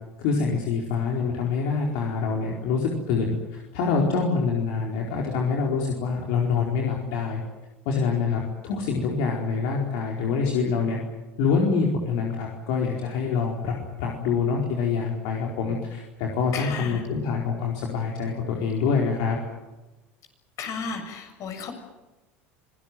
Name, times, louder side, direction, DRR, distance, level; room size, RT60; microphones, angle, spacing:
voice 1, 0.2-7.4 7.8-11.0 11.4-19.4, left 5 dB, 70° left, 0 dB, 4.5 m, -26 dB
voice 2, 16.5-17.0 20.6-21.7, left 5 dB, 55° left, 6 dB, 7.3 m, -33 dB
25.5 x 19.0 x 9.4 m, 1.1 s
hypercardioid pair, 80°, 6 cm